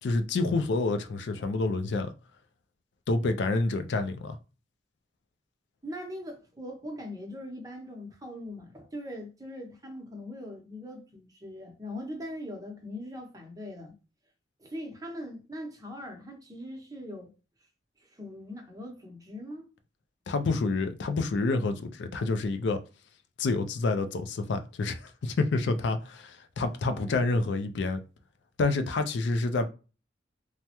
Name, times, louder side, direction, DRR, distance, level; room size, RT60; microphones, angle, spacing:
voice 1, 0.0-2.1 3.1-4.4 20.3-22.8 23.4-28.0 28.6-29.7, left 3 dB, 70° left, 0.4 m, -28 dB
voice 2, 5.8-14.0 14.6-17.3 18.0-19.7 26.8-27.4, left 1 dB, 20° right, 0.7 m, -41 dB
3.3 x 2.0 x 2.8 m
head